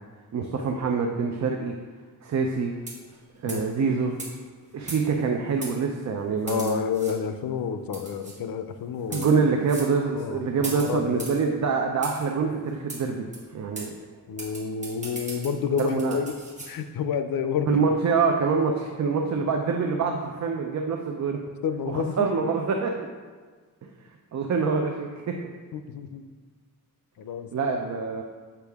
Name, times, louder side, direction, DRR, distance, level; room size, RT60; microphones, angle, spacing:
voice 1, 0.3-1.8 2.2-2.8 3.4-4.2 4.7-6.8 9.1-13.9 15.8-16.2 17.7-21.4 21.9-23.1 23.8-23.9 24.3-25.4 27.5-28.2, right 5 dB, 55° right, 2 dB, 0.6 m, -25 dB
sound 1, 2.8-3.1 3.5-3.7 4.2-4.3 4.9-5.2 5.6-5.7 6.5-7.1 7.9-8.3 9.0-9.3 9.7-9.9 10.6-11.4 12.0-12.2 12.9-13.0 13.3-13.4 13.7-13.9 14.4-16.7, right 2 dB, 20° right, 1.6 m, -38 dB
voice 2, 6.5-9.3 10.1-11.3 14.3-16.3 16.7-17.9 19.4-19.5 21.6-22.3 25.7-26.3 27.2-27.5, left 6 dB, 85° left, 9 dB, 0.6 m, -29 dB
8.2 x 5.7 x 3.5 m, 1.5 s
wide cardioid pair, 165°, 34 cm